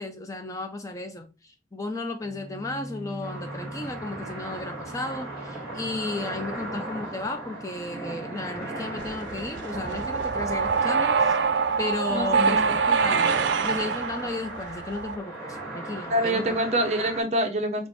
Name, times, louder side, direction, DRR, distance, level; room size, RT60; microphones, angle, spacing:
voice 1, 0.0-11.4 11.8-12.6 12.9-13.3 13.6-16.6, left 2 dB, 20° left, 0.4 m, -34 dB
Bowed string instrument, 2.2-6.7, equal, 65° left, 1.2 m, -43 dB
sound 1, 3.2-17.2, right 1 dB, 5° right, 1.8 m, -37 dB
sound 2, 9.0-15.2, right 5 dB, 90° right, 0.4 m, -25 dB
voice 2, 12.1-12.6 16.1-17.9, right 1 dB, 40° right, 0.7 m, -25 dB
4.2 x 2.4 x 4.4 m
head